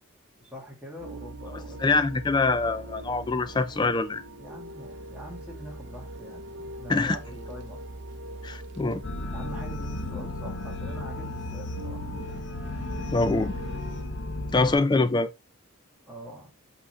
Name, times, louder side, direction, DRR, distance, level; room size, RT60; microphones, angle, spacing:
voice 1, 0.4-2.1 4.4-7.8 9.3-12.1 16.1-16.5, equal, 5° right, 2.2 m, -43 dB
sound 1, 1.0-14.0, right 2 dB, 55° right, 0.8 m, -42 dB
voice 2, 1.8-4.2 6.9-7.2 8.4-9.0 13.1-13.5 14.5-15.3, left 3 dB, 20° left, 0.4 m, -24 dB
sound 2, 9.0-14.8, left 2 dB, 60° left, 0.9 m, -34 dB
7.7 x 4.0 x 3.1 m
head